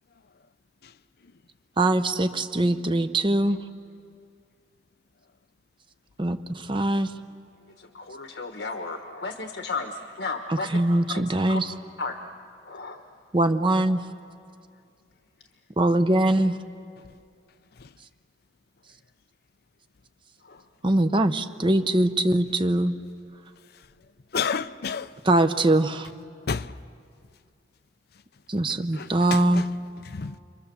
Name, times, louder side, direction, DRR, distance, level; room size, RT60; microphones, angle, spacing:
voice 1, 1.8-3.6 6.2-7.1 10.5-11.7 13.3-14.0 15.8-16.6 20.8-22.9 25.2-26.1 28.5-29.7, right 1 dB, 30° right, 0.8 m, -22 dB
voice 2, 7.9-10.7 11.1-11.6 12.0-12.2 12.7-13.0 20.5-20.6, left 3 dB, 80° left, 1.3 m, -33 dB
voice 3, 24.3-25.1 26.5-26.7 28.9-29.6 30.1-30.4, left 6 dB, 65° left, 0.6 m, -30 dB
29.5 x 23.5 x 6.9 m
head